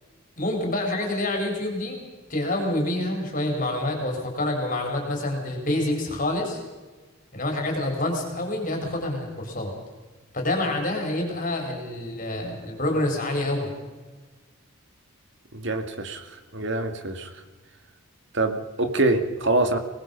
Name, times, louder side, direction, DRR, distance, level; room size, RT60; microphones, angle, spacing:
voice 1, 0.4-2.0 2.3-6.6 7.3-9.7 10.3-13.7, left 1 dB, 40° left, 2 dB, 4.5 m, -27 dB
voice 2, 15.5-16.3 16.5-17.3 18.3-19.8, right 2 dB, 55° right, 7 dB, 2.0 m, -25 dB
24.5 x 19.5 x 5.5 m, 1.3 s
head